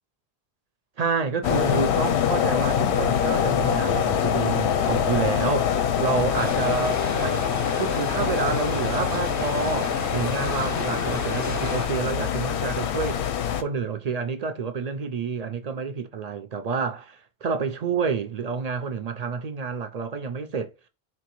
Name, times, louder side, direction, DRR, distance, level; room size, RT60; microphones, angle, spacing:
voice 1, 1.0-7.5 7.8-13.2 13.6-20.7, right 5 dB, 50° right, 0.5 m, -29 dB
sound 1, 1.4-13.6, left 8 dB, 85° left, 0.9 m, -25 dB
sound 2, 6.3-11.9, left 2 dB, 20° left, 0.5 m, -32 dB
4.4 x 2.8 x 3.0 m
omnidirectional pair, 1.1 m